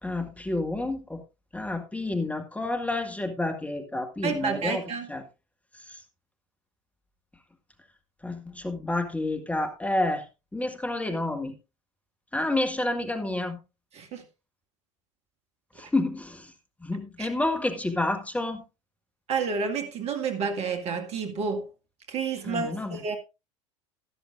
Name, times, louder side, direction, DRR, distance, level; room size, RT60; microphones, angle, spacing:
voice 1, 0.0-1.2 1.5-4.8 5.1-5.2 5.9-6.0 8.2-10.2 10.5-11.5 12.3-13.6 15.8-16.5 16.8-18.6 22.5-23.0, left 2 dB, 10° left, 1.8 m, -29 dB
voice 2, 4.2-5.1 13.9-14.2 15.8-15.9 17.2-17.3 19.3-21.7 22.1-23.2, right 5 dB, 40° right, 1.9 m, -30 dB
13.0 x 12.5 x 2.5 m
figure-of-eight pair, 75°, 16 cm